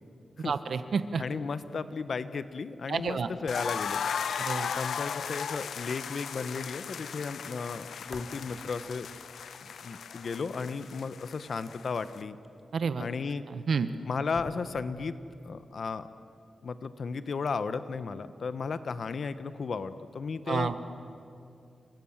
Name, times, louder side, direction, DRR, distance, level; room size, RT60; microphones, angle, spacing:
voice 1, 0.4-1.2 2.9-3.3 4.4-4.7 12.7-13.1 13.5-13.9 20.5-20.8, right 5 dB, 70° right, 11 dB, 1.2 m, -29 dB
voice 2, 1.2-4.0 4.7-9.1 9.6-12.4 13.0-13.4 14.0-15.2 15.4-16.1 16.6-20.8, left 5 dB, 60° left, 12 dB, 1.1 m, -34 dB
sound 1, 3.5-12.2, left 7 dB, 90° left, 0.6 m, -36 dB
sound 2, 8.1-8.9 9.2-13.1 13.7-13.8 14.3-15.2, left 1 dB, 20° left, 2.7 m, -50 dB
28.5 x 25.5 x 7.4 m, 2.6 s
wide cardioid pair, 100°, 0 cm